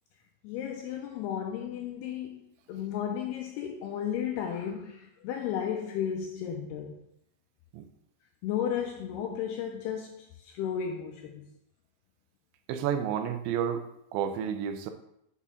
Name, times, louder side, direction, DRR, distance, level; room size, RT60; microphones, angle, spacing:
voice 1, 0.4-2.4 2.7-7.0 8.4-11.5, left 8 dB, 85° left, 2 dB, 2.3 m, -34 dB
voice 2, 12.7-13.9 14.1-14.9, right 8 dB, 90° right, 8 dB, 2.9 m, -30 dB
7.2 x 4.2 x 3.6 m, 0.77 s
omnidirectional pair, 5.1 m